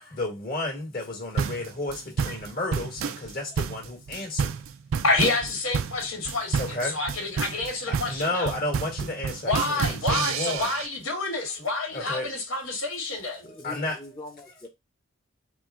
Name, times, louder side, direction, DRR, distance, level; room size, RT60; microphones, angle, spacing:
voice 1, 0.0-4.5 6.6-7.0 7.9-10.7 11.4-11.6 11.9-12.3 13.4-14.0, left 2 dB, 45° left, 1.8 m, -32 dB
sound 1, 1.4-10.9, right 6 dB, 80° right, 0.4 m, -30 dB
voice 2, 5.0-8.5 9.5-13.5, left 2 dB, 75° left, 1.9 m, -28 dB
voice 3, 13.4-14.7, left 2 dB, 20° left, 0.8 m, -42 dB
4.9 x 2.3 x 3.6 m
head